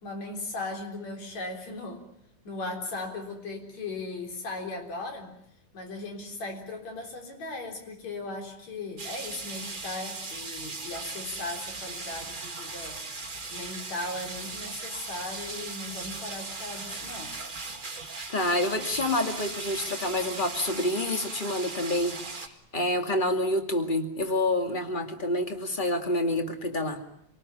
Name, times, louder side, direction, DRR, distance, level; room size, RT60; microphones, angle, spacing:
voice 1, 0.0-2.0 2.4-5.3 5.7-13.0 13.5-17.4, left 2 dB, 55° left, 3 dB, 5.0 m, -37 dB
sound 1, 9.0-22.5, right 3 dB, 30° right, 0.9 m, -38 dB
voice 2, 18.3-27.0, left 1 dB, 15° left, 5 dB, 1.9 m, -28 dB
27.5 x 19.0 x 9.9 m, 0.74 s
omnidirectional pair, 3.8 m